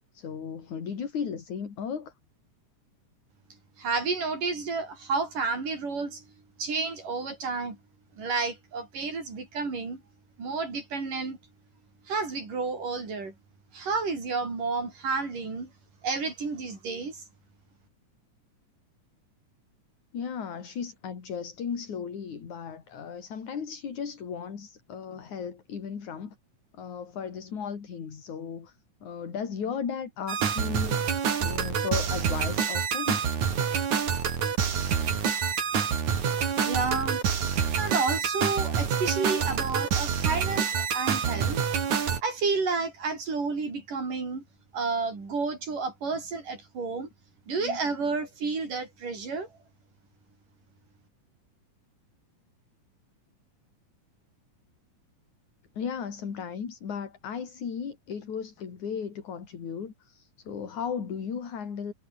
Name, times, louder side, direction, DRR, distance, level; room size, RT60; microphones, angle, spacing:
voice 1, 0.1-2.1 20.1-26.4 26.7-33.3 47.5-47.8 55.7-61.9, left 7 dB, 65° left, 4.7 m, -36 dB
voice 2, 3.8-6.2 6.6-7.8 8.2-10.0 10.4-11.4 12.1-13.3 13.7-15.7 16.0-17.2 36.6-37.2 37.8-41.6 42.2-44.4 44.7-47.1 47.5-49.5, right 4 dB, 85° right, 8.3 m, -31 dB
sound 1, 30.3-42.2, right 7 dB, 65° right, 4.2 m, -27 dB
omnidirectional pair, 3.7 m